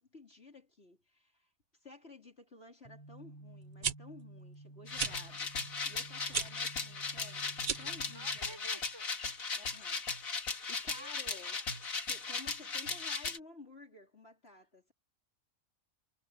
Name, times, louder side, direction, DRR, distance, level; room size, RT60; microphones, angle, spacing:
voice 1, 0.0-1.5 1.8-8.9 9.6-10.1 10.5-11.6 12.1-14.9, left 2 dB, 50° left, 4.4 m, -54 dB
sound 1, 2.8-8.4, right 2 dB, 25° left, 3.0 m, -52 dB
sound 2, 3.6-3.9 4.9-5.1 6.3-6.5 7.6-8.0, right 6 dB, 40° right, 0.8 m, -34 dB
sound 3, 4.9-13.4, left 4 dB, 80° left, 2.5 m, -37 dB
voice 2, 8.1-9.2 10.9-12.1, right 1 dB, 20° right, 6.5 m, -54 dB
omnidirectional pair, 1.4 m